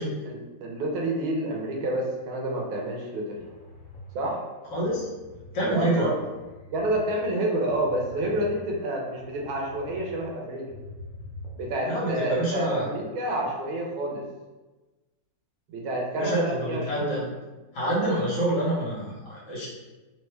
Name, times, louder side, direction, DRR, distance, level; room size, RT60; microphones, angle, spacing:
voice 1, 0.0-3.4 4.1-4.4 5.6-6.2 6.7-10.7 11.6-14.2 15.7-17.1, right 1 dB, 85° right, -1 dB, 1.5 m, -29 dB
sound 1, 3.4-5.5 5.9-7.0 7.4-10.0 10.3-11.8, left 2 dB, 85° left, 0.7 m, -46 dB
voice 2, 4.7-5.1 5.5-6.1 11.8-12.9 16.2-17.2 17.7-19.7, right 1 dB, 60° left, -6 dB, 1.4 m, -27 dB
3.5 x 2.1 x 3.2 m, 1.2 s
omnidirectional pair, 2.2 m